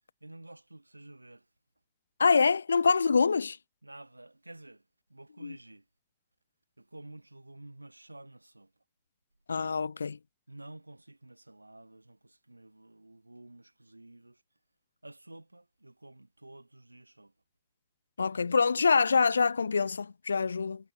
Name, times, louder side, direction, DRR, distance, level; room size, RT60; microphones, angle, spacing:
voice 1, 0.2-1.5 3.8-5.9 6.8-8.7 10.5-14.4 15.0-17.3, right 2 dB, 85° right, 2.4 m, -51 dB
voice 2, 2.2-3.6 5.4-5.6 9.5-10.2 18.2-20.8, left 5 dB, 75° left, 0.4 m, -25 dB
figure-of-eight pair, 90°, 0 cm